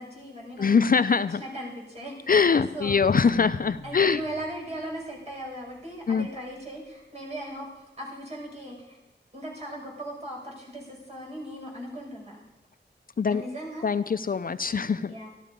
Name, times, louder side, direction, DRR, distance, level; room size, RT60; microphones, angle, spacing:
voice 1, 0.0-3.4 3.8-9.0 9.3-12.4 13.2-13.9 15.1-15.3, right 1 dB, 35° right, -3 dB, 5.5 m, -38 dB
voice 2, 0.6-1.4 2.3-4.2 6.1-6.3 13.2-13.4 13.8-15.1, left 5 dB, 50° left, 13 dB, 0.4 m, -23 dB
sound 1, 2.2-6.2, left 4 dB, 85° left, 0.8 m, -45 dB
13.5 x 12.5 x 5.2 m, 0.98 s
wide cardioid pair, 80°, 19 cm